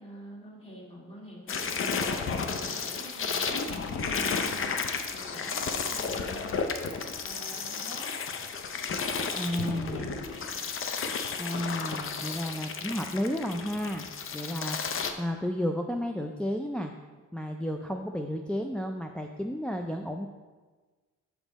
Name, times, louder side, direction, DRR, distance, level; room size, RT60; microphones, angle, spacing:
voice 1, 0.0-8.1 9.6-10.6, equal, 20° left, -4 dB, 2.1 m, -46 dB
sound 1, 1.5-15.1, left 5 dB, 45° left, 0.6 m, -33 dB
voice 2, 9.4-10.1 11.4-14.1 14.3-16.9 17.3-20.3, equal, 5° left, 3 dB, 0.3 m, -32 dB
6.0 x 5.4 x 4.1 m, 1.4 s
cardioid pair, 90°, 30 cm